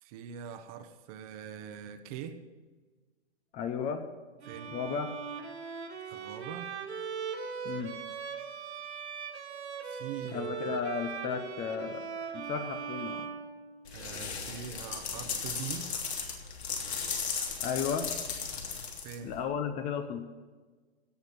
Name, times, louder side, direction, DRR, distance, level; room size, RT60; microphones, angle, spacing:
voice 1, 0.0-2.4 4.4-4.7 6.1-6.7 9.9-10.7 13.9-15.9 19.0-19.3, right 8 dB, 35° right, 9 dB, 1.1 m, -43 dB
voice 2, 3.5-4.0 4.7-5.1 7.6-8.0 10.3-12.1 12.3-13.3 17.6-18.1 19.2-20.2, left 6 dB, 20° left, 8 dB, 0.8 m, -34 dB
Bowed string instrument, 4.4-14.1, right 6 dB, 90° right, 2.1 m, -40 dB
sound 1, 13.9-19.4, left 5 dB, 75° left, 3.1 m, -36 dB
16.5 x 6.5 x 8.7 m, 1.4 s
hypercardioid pair, 145°, 32 cm